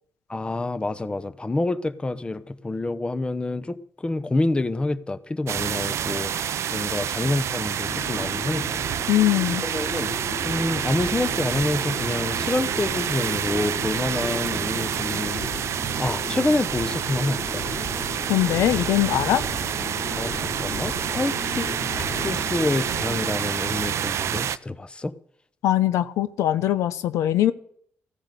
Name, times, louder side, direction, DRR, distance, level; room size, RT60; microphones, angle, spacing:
voice 1, 0.3-8.9 9.6-10.1 10.4-15.4 16.0-17.7 20.2-21.7 22.1-25.1, left 2 dB, 20° left, 0.9 m, -27 dB
sound 1, 5.5-24.6, right 9 dB, 65° right, 0.5 m, -28 dB
sound 2, 7.8-23.3, left 3 dB, 55° left, 4.1 m, -36 dB
voice 2, 9.1-9.6 18.3-19.4 25.6-27.5, left 13 dB, 85° left, 0.7 m, -21 dB
15.0 x 10.0 x 6.8 m
cardioid pair, 80°, 5 cm